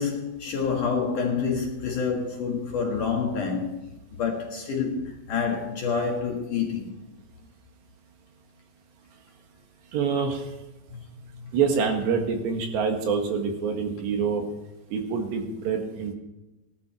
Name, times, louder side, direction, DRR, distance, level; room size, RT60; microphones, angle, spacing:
voice 1, 0.0-3.9 4.1-6.9 10.9-11.0 11.3-11.5, left 5 dB, 55° left, 2.6 m, -28 dB
voice 2, 9.9-10.5 11.5-14.4 14.9-16.1, right 6 dB, 70° right, 3.8 m, -26 dB
18.5 x 11.5 x 4.4 m
omnidirectional pair, 5.3 m